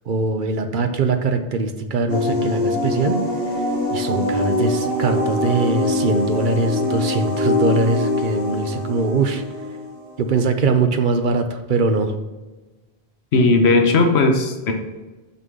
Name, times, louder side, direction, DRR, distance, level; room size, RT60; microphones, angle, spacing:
voice 1, 0.1-3.2 3.5-3.6 3.9-9.4 10.2-12.1, right 3 dB, 55° right, 7 dB, 0.9 m, -21 dB
sound 1, 2.1-10.4, left 1 dB, 40° left, 2.3 m, -23 dB
voice 2, 13.3-14.7, left 3 dB, 80° left, 4 dB, 1.1 m, -16 dB
6.4 x 5.7 x 3.7 m, 1.2 s
omnidirectional pair, 1.1 m